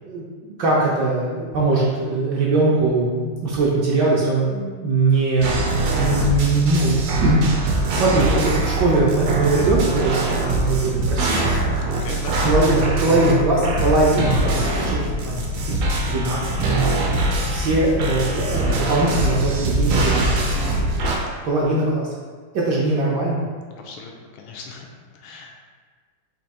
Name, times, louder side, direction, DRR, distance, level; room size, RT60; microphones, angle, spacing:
voice 1, 0.0-7.5 7.9-11.4 12.4-15.0 15.2-15.4 16.0-16.4 16.6-16.8 17.5-20.6 21.4-22.1 22.5-23.4, right 2 dB, 65° right, -5 dB, 1.1 m, -21 dB
sound 1, 5.4-21.2, right 2 dB, 85° right, 1.6 m, -22 dB
voice 2, 11.9-12.4 21.5-21.7 23.7-24.9 25.1-25.6, left 4 dB, 75° left, 0 dB, 1.3 m, -39 dB
4.5 x 2.8 x 4.1 m, 1.6 s
omnidirectional pair, 2.4 m